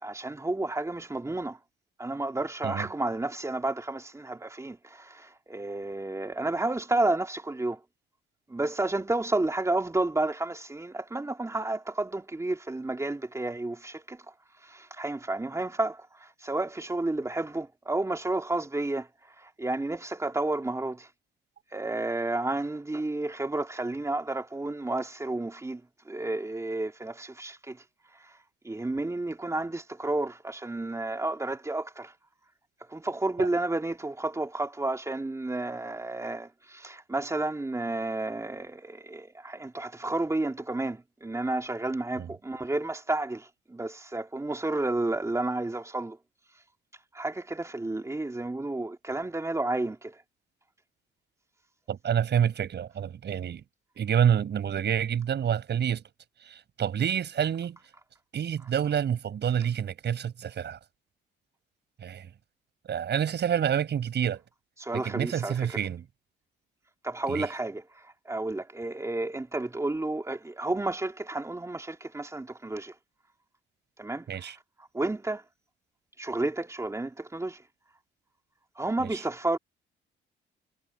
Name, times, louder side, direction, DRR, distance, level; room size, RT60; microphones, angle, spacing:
voice 1, 0.0-1.6 2.0-7.8 8.5-14.2 14.6-19.1 19.4-21.1 21.7-27.8 28.2-28.4 28.6-32.1 32.9-46.2 47.1-50.2 64.8-65.8 67.0-72.9 74.0-74.5 74.8-75.4 76.2-77.6 78.8-79.6, right 2 dB, 15° right, 2.7 m, -31 dB
voice 2, 51.9-53.6 54.0-56.0 56.5-57.8 58.3-60.8 62.0-62.3 62.9-64.4 64.9-66.0 67.3-67.5 74.3-74.6 79.0-79.2, right 8 dB, 60° right, 7.5 m, -28 dB
cardioid pair, 90°, 20 cm